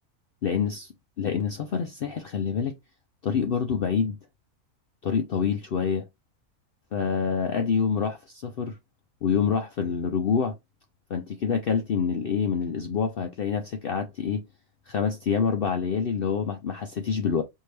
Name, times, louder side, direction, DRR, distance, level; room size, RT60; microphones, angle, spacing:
voice 1, 0.4-0.9 1.2-2.7 3.2-4.2 5.0-6.0 6.9-8.8 9.2-10.5 11.1-14.4 14.9-17.4, left 6 dB, 80° left, 0.5 m, -26 dB
4.5 x 2.7 x 3.2 m
omnidirectional pair, 1.6 m